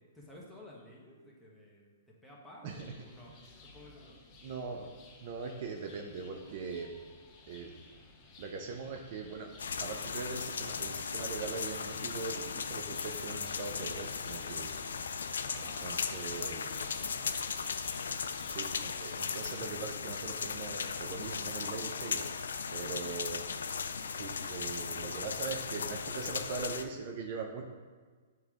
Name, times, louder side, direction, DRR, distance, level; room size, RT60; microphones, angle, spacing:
voice 1, 0.1-3.3 3.6-4.2 15.5-17.3, equal, ahead, -6 dB, 1.1 m, -52 dB
sound 1, 2.7-19.7, left 3 dB, 30° left, 0.8 m, -55 dB
voice 2, 4.4-4.9 5.2-6.9 7.5-7.7 8.4-9.5 9.8-14.7 15.6-16.6 18.4-22.2 22.7-23.4 24.1-27.6, right 4 dB, 45° right, 2 dB, 0.6 m, -41 dB
sound 2, 9.6-26.8, left 5 dB, 85° left, 0.3 m, -37 dB
8.1 x 3.2 x 3.6 m, 1.5 s
hypercardioid pair, 145°, 0 cm